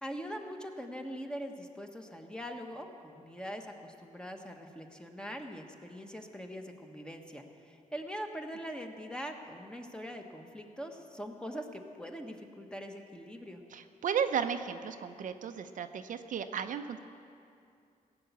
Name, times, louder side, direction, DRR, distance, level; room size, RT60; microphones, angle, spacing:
voice 1, 0.0-13.6, equal, 5° left, 3 dB, 1.2 m, -42 dB
voice 2, 13.7-17.0, right 7 dB, 65° right, 8 dB, 0.6 m, -34 dB
17.0 x 7.0 x 8.2 m, 2.5 s
cardioid pair, 110°, 14 cm